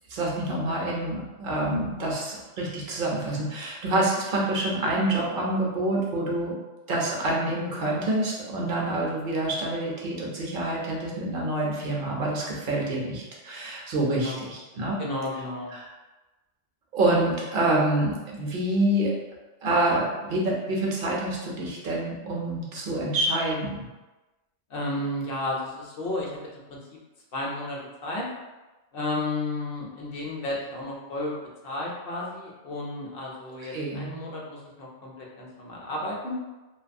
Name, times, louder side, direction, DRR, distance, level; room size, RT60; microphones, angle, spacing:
voice 1, 0.1-6.5 6.9-14.9 15.7-15.8 16.9-19.1 19.6-23.9 33.6-34.1, right 1 dB, 60° right, -3 dB, 0.7 m, -27 dB
voice 2, 14.1-14.5 15.0-15.7 24.7-26.3 26.7-27.0 27.3-28.3 28.9-31.4 31.6-36.3, left 2 dB, 60° left, -3 dB, 0.7 m, -33 dB
2.5 x 2.3 x 2.5 m, 1.1 s
omnidirectional pair, 1.2 m